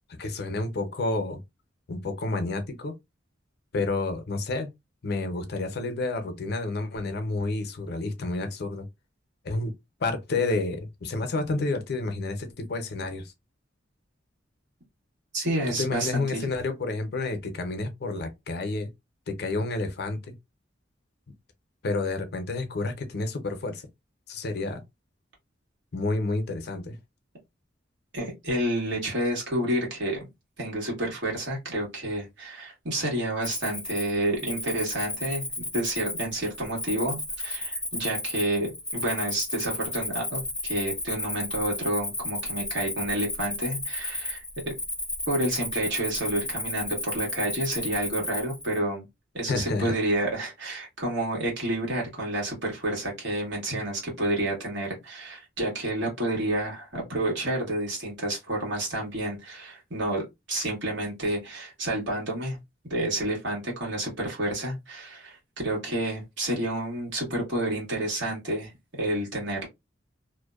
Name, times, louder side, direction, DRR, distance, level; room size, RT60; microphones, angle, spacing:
voice 1, 0.1-1.4 1.9-2.9 3.7-4.7 5.0-8.9 9.4-9.7 10.0-13.2 15.8-18.9 19.3-20.3 21.8-23.8 24.3-24.8 25.9-27.0 49.5-49.9, left 3 dB, 60° left, 0.6 m, -30 dB
voice 2, 15.3-16.5 28.1-30.3 30.6-35.4 35.7-44.7 45.3-49.1 49.3-62.6 62.9-69.7, right 1 dB, 80° right, 1.4 m, -29 dB
Cricket, 33.4-48.8, left 2 dB, 5° left, 0.6 m, -33 dB
2.6 x 2.1 x 2.3 m
head